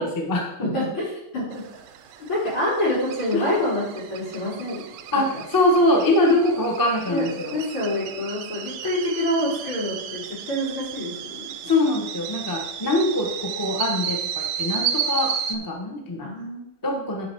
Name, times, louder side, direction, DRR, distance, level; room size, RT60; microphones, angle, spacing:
voice 1, 0.0-0.7 3.3-3.6 5.1-7.6 11.6-16.3 16.8-17.3, left 1 dB, 15° left, 1 dB, 0.9 m, -23 dB
voice 2, 0.6-1.6 2.3-4.9 7.1-7.3 7.5-10.2 10.5-11.5 16.2-17.0, left 1 dB, 75° left, -7 dB, 5.1 m, -27 dB
sound 1, 1.5-15.6, right 8 dB, 70° right, 1.1 m, -33 dB
11.0 x 5.1 x 4.6 m, 0.80 s
omnidirectional pair, 2.3 m